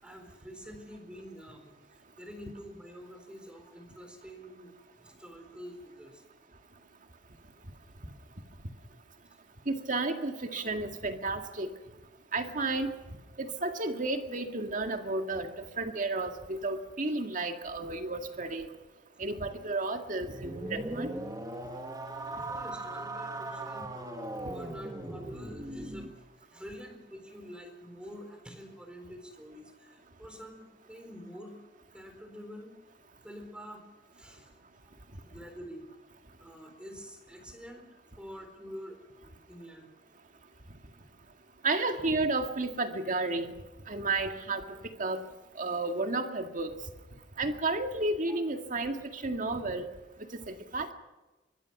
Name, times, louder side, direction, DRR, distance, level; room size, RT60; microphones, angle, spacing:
voice 1, 0.0-6.2 22.2-23.9 24.4-31.5 31.9-32.8 33.2-33.8 34.1-34.6 35.1-35.9 36.4-37.9 38.2-39.0 39.2-39.9 48.3-48.4, equal, 5° right, 5 dB, 4.2 m, -47 dB
voice 2, 9.7-11.7 12.3-12.9 13.4-18.7 19.2-21.1 41.6-43.5 43.9-44.6 45.0-45.2 45.6-46.7 47.4-49.9 50.5-50.9, right 2 dB, 45° right, 6 dB, 2.0 m, -32 dB
sound 1, 20.2-26.1, right 2 dB, 20° right, 1.8 m, -39 dB
24.5 x 22.0 x 6.0 m, 1.1 s
head